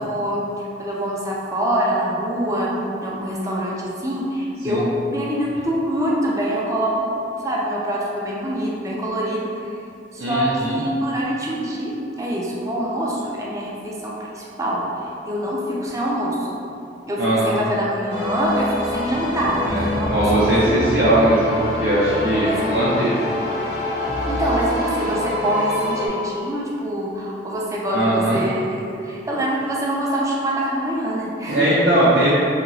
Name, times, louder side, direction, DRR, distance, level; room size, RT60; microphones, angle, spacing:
voice 1, 0.0-2.7 3.0-7.1 7.4-9.7 10.1-14.8 15.3-16.5 17.1-20.9 22.3-22.6 24.2-31.7, equal, 20° right, -4 dB, 0.4 m, -25 dB
voice 2, 10.2-10.8 17.2-17.6 19.7-23.1 27.9-28.4 31.4-32.3, right 1 dB, 70° right, -9 dB, 0.6 m, -19 dB
sound 1, 18.1-26.1, left 1 dB, 60° left, 0.7 m, -25 dB
2.9 x 2.9 x 2.6 m, 2.6 s
head